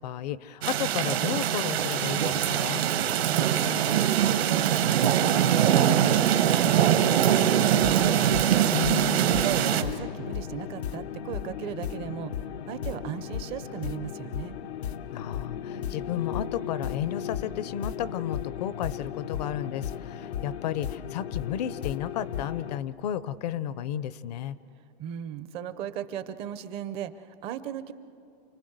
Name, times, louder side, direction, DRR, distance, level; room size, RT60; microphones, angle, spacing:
voice 1, 0.0-2.9 8.7-9.3 15.1-24.6, left 10 dB, 40° left, 17 dB, 0.6 m, -33 dB
sound 1, 0.6-9.8, right 10 dB, 75° right, 1.5 m, -23 dB
voice 2, 3.1-4.0 4.2-8.1 9.3-12.3 12.7-14.5 25.0-27.9, right 9 dB, 20° right, 12 dB, 0.5 m, -37 dB
sound 2, 7.7-22.8, left 9 dB, 90° left, 0.9 m, -35 dB
29.0 x 20.0 x 7.9 m, 2.5 s
hypercardioid pair, 160°, 31 cm